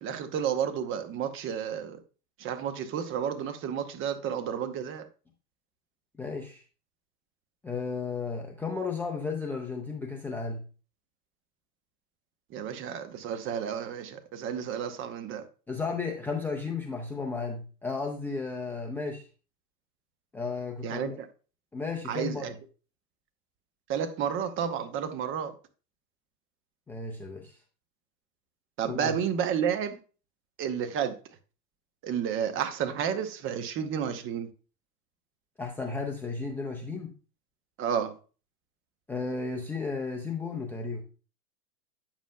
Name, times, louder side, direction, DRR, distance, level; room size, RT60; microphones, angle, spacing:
voice 1, 0.0-2.0 2.4-5.1 12.5-15.5 20.8-21.3 22.1-22.5 23.9-25.5 28.8-30.0 30.6-31.2 32.0-34.5 37.8-38.2, right 8 dB, 25° right, 0.8 m, -31 dB
voice 2, 6.2-6.6 7.6-10.6 15.7-19.3 20.3-21.2 21.7-22.5 26.9-27.5 28.8-29.2 35.6-37.1 39.1-41.0, left 4 dB, 5° left, 0.5 m, -34 dB
8.9 x 7.1 x 2.2 m
hypercardioid pair, 115°, 47 cm